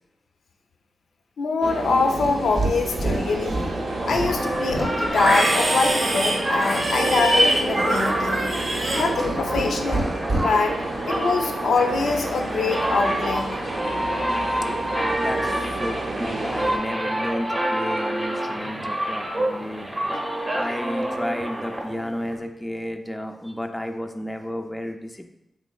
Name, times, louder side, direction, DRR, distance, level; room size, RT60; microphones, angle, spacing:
voice 1, 1.4-3.6 4.0-8.4 9.0-10.1 10.4-10.8 11.1-13.5, left 4 dB, 85° left, 3 dB, 0.3 m, -24 dB
sound 1, 1.6-16.8, right 2 dB, 80° right, 0.4 m, -31 dB
Livestock farm animals working animals, 2.1-2.7 3.0-3.7 4.1-9.7 9.9-10.4, right 1 dB, 60° right, 0.8 m, -24 dB
sound 2, 3.0-22.4, right 1 dB, 25° right, 0.7 m, -28 dB
voice 2, 15.1-19.9 20.5-25.3, left 1 dB, 10° left, 4 dB, 0.3 m, -32 dB
3.6 x 3.0 x 2.3 m, 0.89 s
cardioid pair, 60°, 0 cm